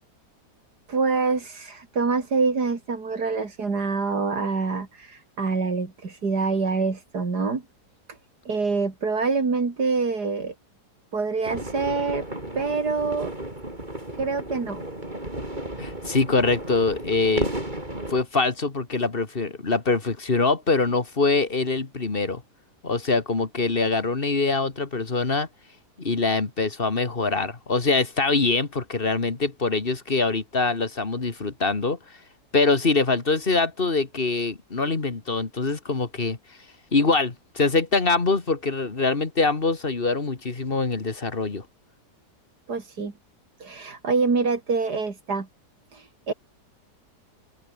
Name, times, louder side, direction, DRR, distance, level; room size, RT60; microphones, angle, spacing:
voice 1, 0.9-7.6 8.5-10.5 11.1-12.3 12.6-13.3 14.2-14.8 42.7-43.1 43.6-45.5 45.9-46.3, right 4 dB, 70° right, 3.7 m, -26 dB
sound 1, 11.4-18.2, right 1 dB, 25° right, 6.7 m, -33 dB
voice 2, 15.8-17.5 18.1-22.4 22.8-25.5 26.0-32.0 32.5-36.4 36.9-41.7, left 3 dB, 35° left, 2.2 m, -24 dB
open air
omnidirectional pair, 1.8 m